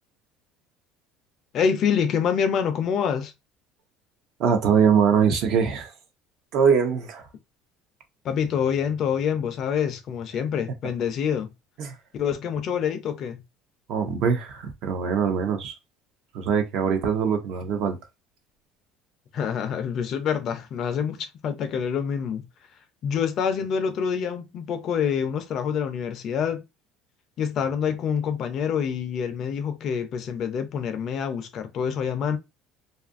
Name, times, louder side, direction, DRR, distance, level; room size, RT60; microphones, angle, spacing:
voice 1, 1.5-3.3 8.2-11.5 12.1-13.4 19.3-22.4 23.0-26.6 27.4-32.4, left 7 dB, 45° left, 0.4 m, -26 dB
voice 2, 4.4-5.9 6.5-7.3 11.8-12.0 13.9-15.8 16.3-18.0, right 7 dB, 55° right, 0.7 m, -22 dB
2.6 x 2.4 x 2.4 m
cardioid pair, 155°, 0 cm